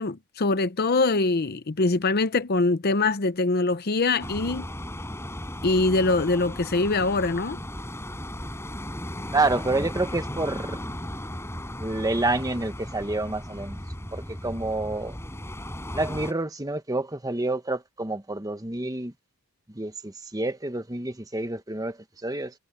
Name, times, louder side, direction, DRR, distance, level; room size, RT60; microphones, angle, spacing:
voice 1, 0.0-4.7 5.6-7.6, left 3 dB, 45° left, 0.7 m, -23 dB
sound 1, 4.2-16.3, left 1 dB, 10° left, 7.0 m, -36 dB
voice 2, 9.3-10.8 11.8-13.8 14.1-15.1 15.9-19.1 19.7-22.0 22.2-22.5, right 2 dB, 15° right, 1.2 m, -28 dB
head